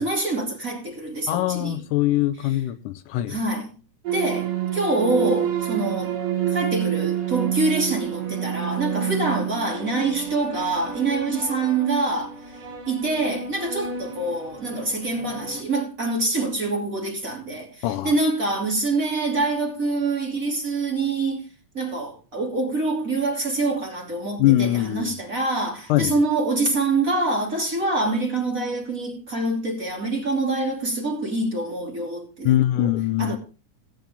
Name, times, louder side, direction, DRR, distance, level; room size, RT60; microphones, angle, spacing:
voice 1, 0.0-1.8 2.4-2.6 3.3-3.7 4.1-6.1 6.5-12.6 12.9-21.4 21.7-33.4, right 2 dB, 25° right, 3.0 m, -25 dB
voice 2, 1.3-3.4 17.8-18.1 24.4-25.1 25.9-26.2 32.5-33.4, left 14 dB, 80° left, 2.3 m, -22 dB
sound 1, 4.1-15.6, right 10 dB, 80° right, 4.0 m, -29 dB
18.5 x 8.7 x 3.7 m
omnidirectional pair, 3.8 m